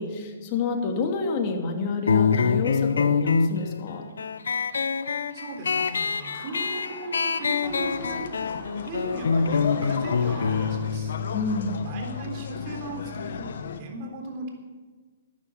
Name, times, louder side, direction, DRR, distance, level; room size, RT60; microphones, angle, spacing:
voice 1, 0.0-4.0 11.3-11.8, left 4 dB, 40° left, 3 dB, 2.7 m, -29 dB
sound 1, 2.1-13.2, left 5 dB, 85° left, 0.8 m, -26 dB
voice 2, 5.3-8.3 8.8-11.1 11.8-13.4 13.8-14.5, right 2 dB, 40° right, 3 dB, 3.6 m, -37 dB
sound 2, 5.7-10.9, equal, ahead, 6.1 m, -45 dB
sound 3, 7.6-13.8, left 6 dB, 70° left, 1.2 m, -36 dB
13.0 x 9.6 x 8.9 m, 1.4 s
hypercardioid pair, 135°, 0 cm